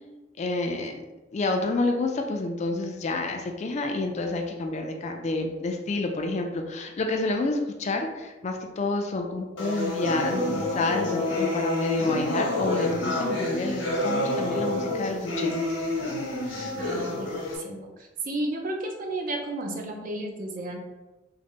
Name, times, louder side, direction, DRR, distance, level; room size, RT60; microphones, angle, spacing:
voice 1, 0.4-0.9 1.3-15.7, left 2 dB, 35° left, 4 dB, 0.3 m, -29 dB
sound 1, 9.6-17.6, left 1 dB, 80° left, 0.8 m, -28 dB
voice 2, 16.8-20.8, right 1 dB, 45° right, 2 dB, 0.5 m, -33 dB
3.7 x 2.1 x 3.5 m, 1.1 s
head